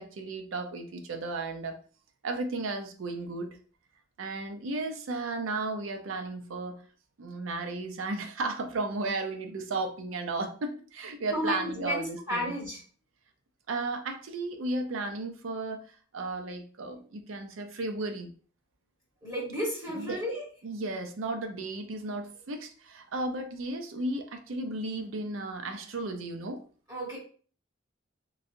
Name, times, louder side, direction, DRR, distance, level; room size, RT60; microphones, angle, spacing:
voice 1, 0.0-1.7 2.2-3.5 4.2-6.8 7.2-12.5 13.7-15.8 16.1-18.3 19.9-20.2 20.6-26.6, right 2 dB, 90° right, 6 dB, 0.5 m, -34 dB
voice 2, 11.3-12.8 19.2-20.4 26.9-27.2, equal, 20° right, -7 dB, 1.4 m, -32 dB
3.1 x 2.5 x 2.6 m, 0.42 s
head